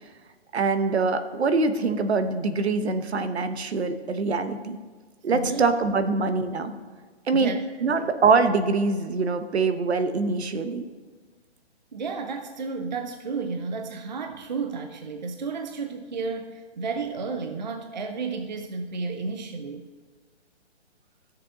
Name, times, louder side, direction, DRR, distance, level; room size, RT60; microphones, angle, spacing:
voice 1, 0.5-4.8 5.2-6.7 7.3-7.5 7.8-10.9, right 4 dB, 65° right, 9 dB, 1.0 m, -24 dB
voice 2, 5.3-5.6 7.3-7.6 8.0-8.1 11.9-19.9, right 4 dB, 40° right, 6 dB, 0.5 m, -32 dB
14.5 x 6.9 x 3.7 m, 1.5 s
hypercardioid pair, 175°, 35 cm